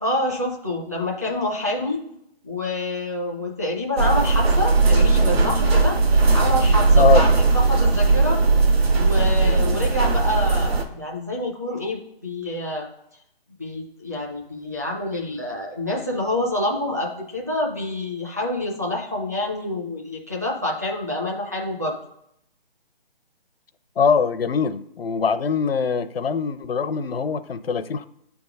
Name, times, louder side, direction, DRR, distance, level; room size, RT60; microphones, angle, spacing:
voice 1, 0.0-2.0 2.4-8.4 8.9-12.9 13.6-22.0, left 1 dB, 15° right, -3 dB, 0.5 m, -27 dB
sound 1, 4.0-10.8, right 3 dB, 75° right, 1.4 m, -18 dB
voice 2, 24.0-28.0, left 6 dB, 70° left, 12 dB, 0.6 m, -22 dB
8.7 x 3.5 x 5.3 m, 0.75 s
hypercardioid pair, 175°, 31 cm